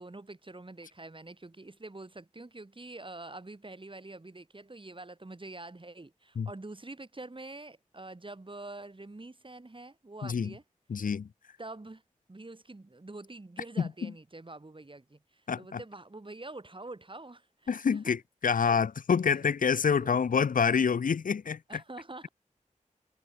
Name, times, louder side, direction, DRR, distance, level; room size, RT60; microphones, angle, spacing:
voice 1, 0.0-10.6 11.6-12.0 12.3-18.2 18.5-18.8 19.3-19.5 19.9-20.2 21.7-22.3, right 2 dB, 40° right, 6.8 m, -46 dB
voice 2, 10.2-10.5 10.9-11.3 13.8-14.1 15.5-15.8 17.7-21.6, left 6 dB, 90° left, 0.8 m, -27 dB
wide cardioid pair, 50°, 14 cm